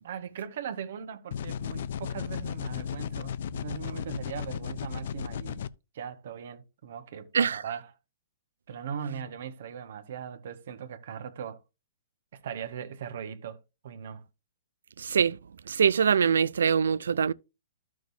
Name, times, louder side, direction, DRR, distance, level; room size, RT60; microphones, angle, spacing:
voice 1, 0.0-5.7 5.9-7.9 8.7-11.6 12.3-14.2, right 8 dB, 60° right, 1.2 m, -39 dB
sound 1, 1.3-5.7, left 8 dB, 60° left, 0.5 m, -35 dB
voice 2, 15.0-15.4 15.7-17.3, right 7 dB, 80° right, 0.4 m, -23 dB
12.5 x 6.2 x 2.7 m
hypercardioid pair, 140°, 0 cm